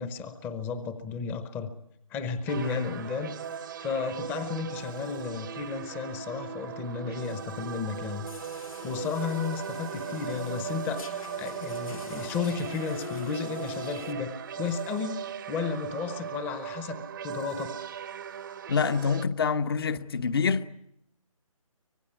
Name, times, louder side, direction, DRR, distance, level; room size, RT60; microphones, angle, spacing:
voice 1, 0.0-1.7 2.1-3.3 3.8-8.3 8.8-11.1 11.4-15.2 15.5-17.7, left 5 dB, 10° left, 0.9 m, -33 dB
sound 1, 2.5-19.3, right 9 dB, 35° right, 0.9 m, -38 dB
voice 2, 2.6-2.9 18.7-20.8, left 5 dB, 45° left, 1.1 m, -27 dB
sound 2, 8.3-14.1, left 3 dB, 75° left, 2.7 m, -43 dB
24.5 x 18.5 x 9.9 m
figure-of-eight pair, 150°, 18 cm